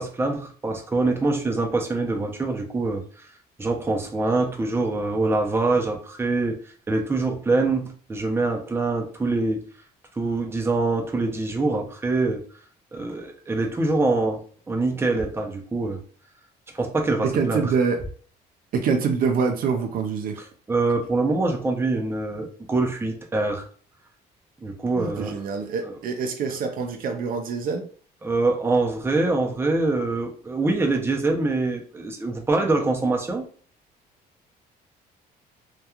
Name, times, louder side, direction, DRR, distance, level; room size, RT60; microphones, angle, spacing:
voice 1, 0.0-3.0 3.6-6.6 6.9-9.7 10.2-12.4 12.9-16.0 16.7-17.7 20.7-23.6 24.6-25.3 25.8-25.9 28.2-33.5, right 3 dB, 15° right, 2 dB, 0.5 m, -24 dB
voice 2, 17.2-18.0 18.7-20.4 25.0-27.9, right 5 dB, 60° right, 5 dB, 0.5 m, -25 dB
3.0 x 2.3 x 2.3 m, 0.43 s
cardioid pair, 110°, 17 cm